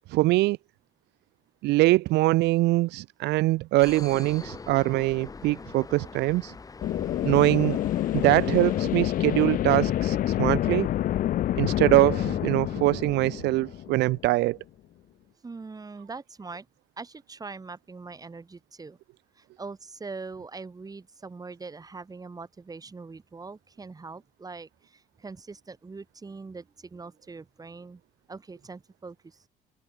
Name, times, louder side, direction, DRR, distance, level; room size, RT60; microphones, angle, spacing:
voice 1, 0.1-0.6 1.6-6.5 7.2-7.8 8.1-10.9 11.6-14.6, right 19 dB, 85° right, 0.8 m, -23 dB
sound 1, 3.8-8.9, left 4 dB, 20° left, 1.1 m, -42 dB
sound 2, 6.8-14.3, left 12 dB, 55° left, 0.6 m, -27 dB
voice 2, 15.4-16.7 17.0-19.0 19.4-28.0 28.3-29.4, right 4 dB, 20° right, 3.1 m, -42 dB
open air
cardioid pair, 110°, 17 cm